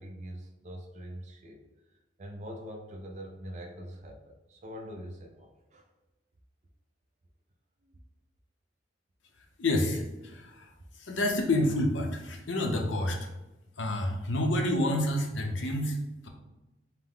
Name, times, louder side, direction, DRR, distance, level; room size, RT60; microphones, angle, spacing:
voice 1, 0.0-1.6 1.9-5.9 7.8-8.0, equal, 40° right, 1 dB, 0.5 m, -44 dB
voice 2, 9.6-13.3 13.8-16.3, left 1 dB, 80° left, 3 dB, 0.7 m, -29 dB
5.6 x 2.1 x 3.6 m, 1.0 s
head